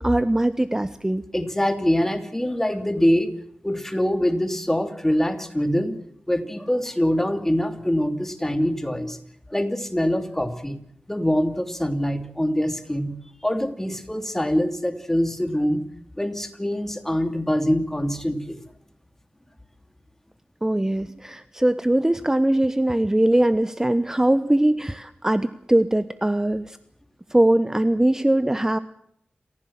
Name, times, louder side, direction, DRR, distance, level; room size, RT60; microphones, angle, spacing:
voice 1, 0.0-1.2 20.6-26.8 27.3-28.8, right 1 dB, 15° right, 13 dB, 1.0 m, -21 dB
voice 2, 1.3-3.3 3.6-6.0 6.3-9.2 9.5-10.8 11.1-13.1 13.4-15.8 16.2-18.6, equal, 10° left, 8 dB, 3.0 m, -24 dB
28.5 x 15.5 x 7.5 m, 0.71 s
wide cardioid pair, 65°, 3 cm